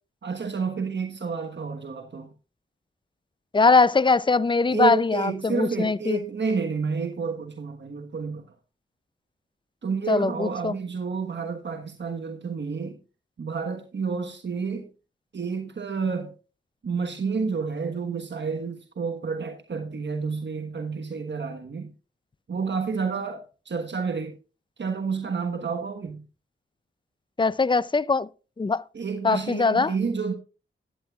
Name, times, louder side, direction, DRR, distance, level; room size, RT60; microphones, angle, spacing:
voice 1, 0.2-2.3 4.7-8.5 9.8-13.0 13.4-14.9 15.3-16.3 16.8-21.9 22.5-24.4 24.8-26.3 28.9-30.3, right 5 dB, 60° right, 1.3 m, -30 dB
voice 2, 3.5-6.2 10.1-10.7 27.4-28.3 28.6-28.8 29.2-29.9, left 4 dB, 25° left, 0.5 m, -21 dB
15.0 x 10.0 x 2.4 m
cardioid pair, 60°, 21 cm